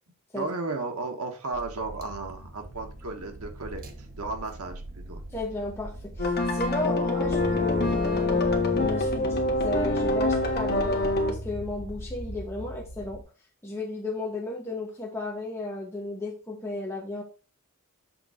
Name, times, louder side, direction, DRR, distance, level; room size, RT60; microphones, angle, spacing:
voice 1, 0.3-3.8 4.2-4.8 5.1-5.2, right 3 dB, 70° right, 4 dB, 1.3 m, -34 dB
sound 1, 1.5-11.2, right 1 dB, 45° right, 1.1 m, -42 dB
voice 2, 5.3-13.2 13.6-17.2, left 2 dB, 10° left, -4 dB, 1.3 m, -34 dB
sound 2, 6.2-11.3, left 2 dB, 50° left, 1.4 m, -25 dB
sound 3, 7.2-13.2, left 1 dB, 75° left, 1.1 m, -37 dB
6.9 x 3.8 x 4.8 m, 0.35 s
head